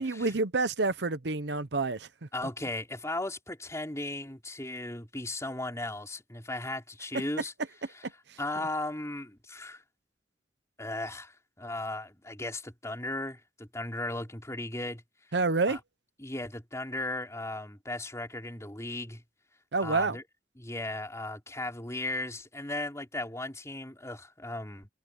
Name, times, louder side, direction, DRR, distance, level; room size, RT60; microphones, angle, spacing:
voice 1, 0.0-2.1 8.3-8.4 15.3-15.8 19.7-20.2, right 3 dB, 70° right, 0.9 m, -28 dB
voice 2, 2.3-7.5 8.4-9.8 10.8-15.0 15.7-15.8 16.2-19.2 19.8-20.2 20.6-24.9, left 2 dB, 15° left, 4.6 m, -36 dB
head